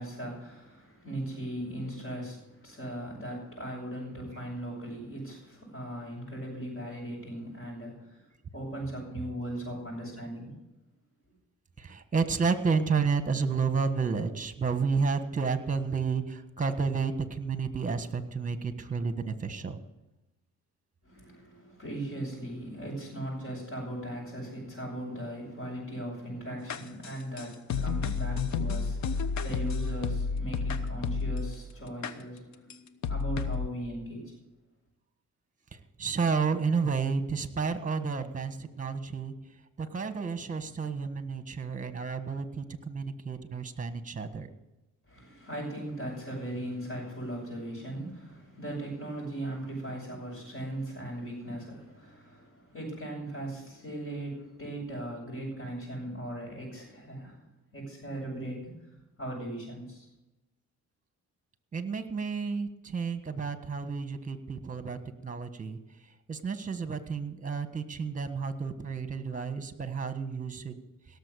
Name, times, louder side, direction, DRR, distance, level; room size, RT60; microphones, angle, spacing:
voice 1, 0.0-8.2 8.5-10.6 21.0-34.3 45.1-57.4 57.7-58.9 59.2-60.1, right 1 dB, 45° left, -7 dB, 6.6 m, -38 dB
voice 2, 11.8-19.8 36.0-39.3 39.8-44.5 61.7-65.8 66.3-70.7, right 5 dB, 25° right, 10 dB, 1.4 m, -31 dB
sound 1, 26.7-31.6 32.0-32.1 32.7-32.8 33.0-33.7, left 5 dB, 65° left, 1.0 m, -31 dB
17.5 x 7.0 x 8.3 m, 0.99 s
cardioid pair, 90°, 30 cm